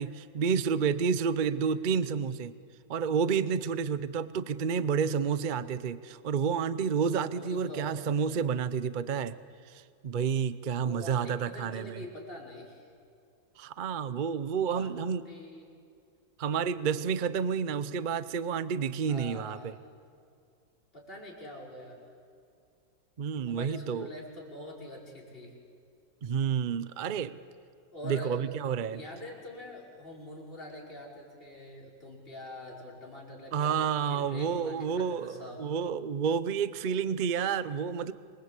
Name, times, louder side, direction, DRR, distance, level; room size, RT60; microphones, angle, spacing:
voice 1, 0.0-2.5 2.9-9.4 9.7-12.0 13.6-15.2 16.4-19.7 23.2-24.1 26.2-27.4 28.0-29.0 33.5-38.1, right 6 dB, 75° right, 15 dB, 0.4 m, -30 dB
voice 2, 7.3-8.0 10.7-12.9 14.6-15.0 15.3-15.7 19.1-19.7 20.9-22.0 23.4-25.6 27.9-28.4 28.9-35.7, left 1 dB, 30° left, -3 dB, 5.4 m, -45 dB
27.0 x 22.5 x 8.3 m, 2.4 s
omnidirectional pair, 2.0 m